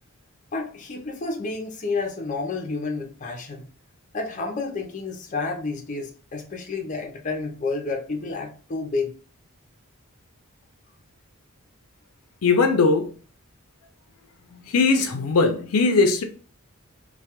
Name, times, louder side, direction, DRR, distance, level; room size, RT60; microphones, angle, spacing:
voice 1, 0.5-3.7 4.1-9.1, left 3 dB, 35° left, 0.5 m, -30 dB
voice 2, 12.4-13.2 14.5-16.2, left 4 dB, 85° left, 0.5 m, -20 dB
2.2 x 2.2 x 2.9 m
head